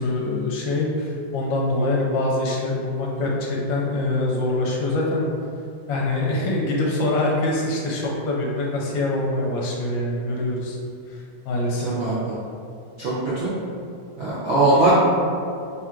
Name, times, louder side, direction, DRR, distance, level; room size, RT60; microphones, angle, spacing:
voice 1, 0.0-5.3 5.9-10.8 11.1-11.9, left 2 dB, 75° left, -2 dB, 1.3 m, -24 dB
voice 2, 11.8-12.3 13.0-13.5 14.2-14.9, right 2 dB, 75° right, -10 dB, 0.6 m, -21 dB
3.5 x 2.4 x 4.3 m, 2.5 s
omnidirectional pair, 2.1 m